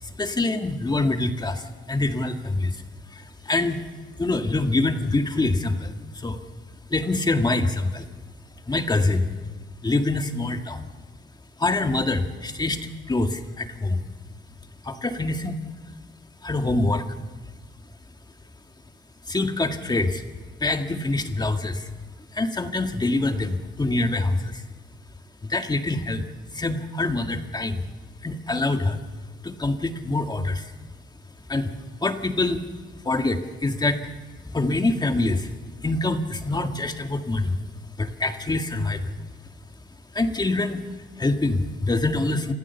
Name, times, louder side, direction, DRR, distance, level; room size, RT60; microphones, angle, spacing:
voice 1, 0.0-2.8 3.1-3.8 4.2-6.4 6.9-8.1 8.6-9.3 9.8-10.9 11.6-12.8 13.1-14.1 14.8-15.6 16.4-17.1 19.3-20.2 20.6-21.9 22.3-24.6 25.4-27.9 28.2-29.0 29.4-30.7 31.5-31.7 32.0-32.6 33.0-34.1 34.4-35.5 35.8-37.6 38.0-39.2 40.1-42.5, left 2 dB, 20° left, 6 dB, 1.8 m, -25 dB
27.0 x 14.5 x 7.0 m, 1.3 s
cardioid pair, 90°, 20 cm